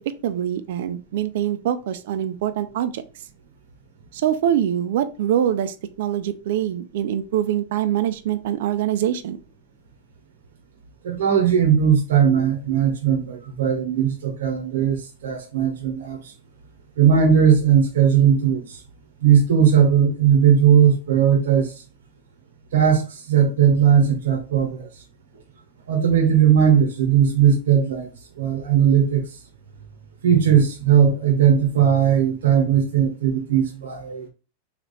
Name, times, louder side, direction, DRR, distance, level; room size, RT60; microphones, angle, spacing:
voice 1, 0.2-3.0 4.1-9.4, right 10 dB, 70° right, 0.4 m, -24 dB
voice 2, 11.0-16.2 17.0-18.6 19.2-21.7 22.7-24.9 25.9-28.1 28.4-29.2 30.2-34.3, right 8 dB, 90° right, 0.9 m, -18 dB
3.4 x 2.9 x 4.0 m
supercardioid pair, 135°, 0 cm